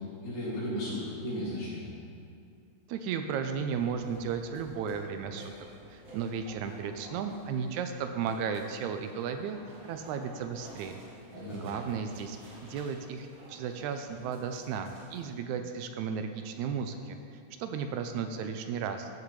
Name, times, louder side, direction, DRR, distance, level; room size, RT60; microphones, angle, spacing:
voice 1, 0.2-1.9 11.3-11.7, left 1 dB, 80° left, -7 dB, 3.9 m, -35 dB
voice 2, 2.9-5.5 5.9-9.6 9.8-11.0 11.6-17.2 17.6-19.1, right 6 dB, 80° right, 7 dB, 1.9 m, -34 dB
sound 1, 3.7-15.2, right 1 dB, 45° right, 2.4 m, -52 dB
14.0 x 7.3 x 3.2 m, 2.4 s
omnidirectional pair, 3.5 m